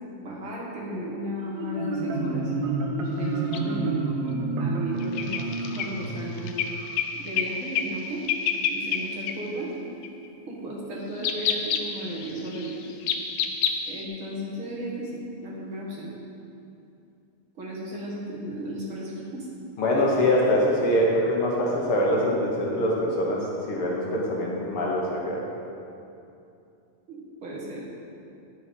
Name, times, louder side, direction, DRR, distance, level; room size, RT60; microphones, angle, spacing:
voice 1, 0.2-2.5 3.0-4.0 4.6-6.6 7.1-8.2 8.7-9.7 10.5-12.8 13.9-16.1 17.6-19.5 27.1-27.8, right 1 dB, 50° right, -5 dB, 2.0 m, -35 dB
Marimba xylophone, 1.4-7.0, right 3 dB, 70° right, 1.9 m, -29 dB
sound 1, 3.5-3.6 5.0-7.5 7.8-8.0 8.3-9.0 9.3-9.4 10.0-10.3 11.2-14.0, left 8 dB, 85° left, 1.5 m, -28 dB
voice 2, 19.8-25.4, left 1 dB, 55° left, -3 dB, 1.6 m, -24 dB
11.0 x 6.9 x 5.3 m, 2.6 s
omnidirectional pair, 3.9 m